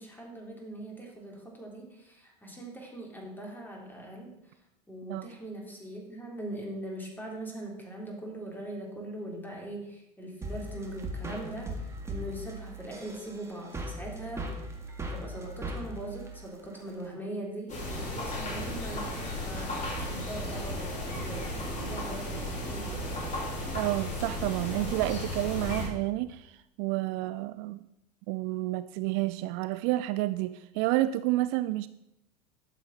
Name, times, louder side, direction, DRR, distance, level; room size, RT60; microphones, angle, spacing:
voice 1, 0.0-4.3 4.9-14.5 15.1-23.1, right 1 dB, 10° left, -1 dB, 3.5 m, -41 dB
sound 1, 10.4-17.1, right 1 dB, 15° right, 1.9 m, -39 dB
sound 2, 17.7-25.9, left 1 dB, 35° left, 4.6 m, -35 dB
voice 2, 23.7-27.8 28.3-31.9, right 17 dB, 55° right, 14 dB, 0.4 m, -30 dB
12.0 x 7.2 x 4.1 m, 0.85 s
hypercardioid pair, 85°, 21 cm